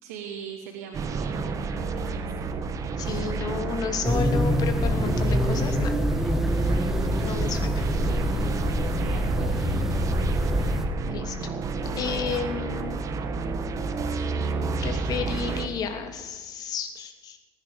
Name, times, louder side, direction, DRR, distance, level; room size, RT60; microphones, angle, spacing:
voice 1, 0.0-2.3 8.7-9.5, right 7 dB, 90° right, 0 dB, 2.4 m, -41 dB
sound 1, 0.9-15.7, right 4 dB, 40° right, 1.8 m, -30 dB
voice 2, 3.0-5.9 6.6-6.8 7.2-7.8 11.1-11.3 12.0-13.0 14.1-14.3 14.8-17.4, left 6 dB, 50° left, 5 dB, 3.1 m, -32 dB
sound 2, 4.0-10.9, equal, 5° right, 2.1 m, -25 dB
19.5 x 10.5 x 7.0 m, 1.4 s
supercardioid pair, 95°, 8 cm